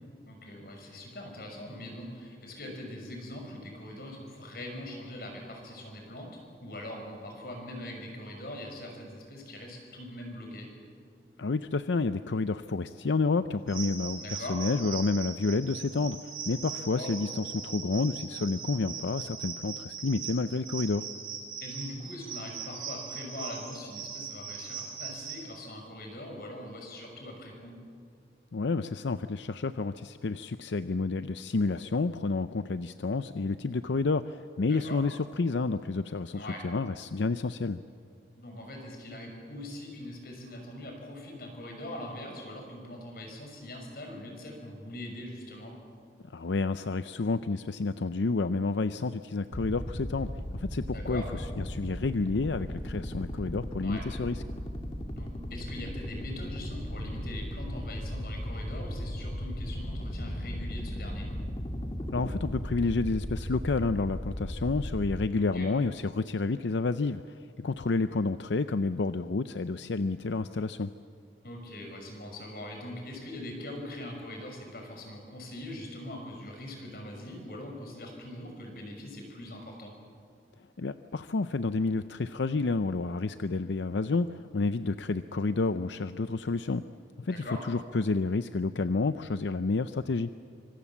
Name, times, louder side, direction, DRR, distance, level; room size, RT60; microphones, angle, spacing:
voice 1, 0.3-6.3 6.6-10.7 14.2-14.6 16.9-17.2 21.6-27.8 34.7-35.0 36.3-36.6 38.3-45.7 50.9-51.3 53.8-54.0 55.1-61.3 65.4-65.7 71.4-79.9 87.3-87.6, left 1 dB, 55° left, 2 dB, 6.1 m, -42 dB
voice 2, 11.4-16.2 16.5-21.1 28.5-37.8 46.3-51.2 51.6-54.4 62.1-67.2 67.6-70.9 80.8-86.8 87.2-90.3, left 3 dB, 90° left, 11 dB, 0.6 m, -30 dB
sound 1, 13.7-25.4, right 7 dB, 55° right, 6.0 m, -40 dB
sound 2, 49.5-65.3, equal, 30° left, 1.7 m, -36 dB
25.0 x 25.0 x 7.2 m, 2.2 s
head